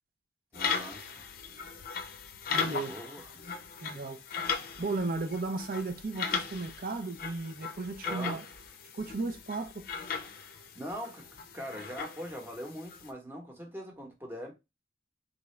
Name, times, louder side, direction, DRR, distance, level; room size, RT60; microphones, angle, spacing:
sound 1, 0.5-13.1, left 6 dB, 55° left, 0.5 m, -38 dB
voice 1, 0.5-1.1 2.5-3.3 8.1-8.4 10.7-11.3 11.5-14.5, equal, 15° right, 0.9 m, -42 dB
voice 2, 2.5-2.9 3.8-4.2 4.8-8.4 9.0-9.8, right 3 dB, 55° right, 0.6 m, -35 dB
3.9 x 2.4 x 3.1 m
head